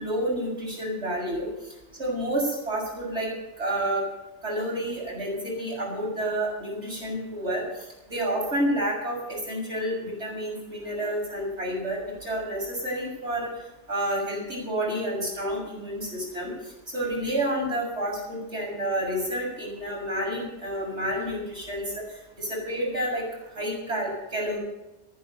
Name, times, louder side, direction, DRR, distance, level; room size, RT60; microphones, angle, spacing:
voice 1, 0.0-1.5 2.0-3.3 3.6-4.0 4.4-7.6 8.1-13.5 13.9-16.5 16.9-22.0 22.4-23.2 23.6-24.6, right 1 dB, 80° right, -3 dB, 7.2 m, -29 dB
14.5 x 11.0 x 6.8 m, 0.95 s
omnidirectional pair, 1.2 m